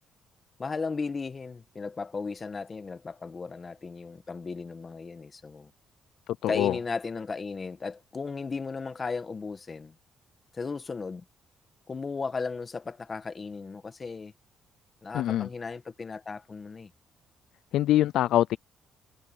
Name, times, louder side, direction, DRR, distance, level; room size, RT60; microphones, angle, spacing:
voice 1, 0.6-5.7 6.5-9.9 10.5-11.2 11.9-14.3 15.0-16.9, left 4 dB, 35° left, 1.4 m, -35 dB
voice 2, 6.3-6.8 15.1-15.5 17.7-18.6, left 13 dB, 80° left, 0.4 m, -24 dB
cardioid pair, 90°, 0 cm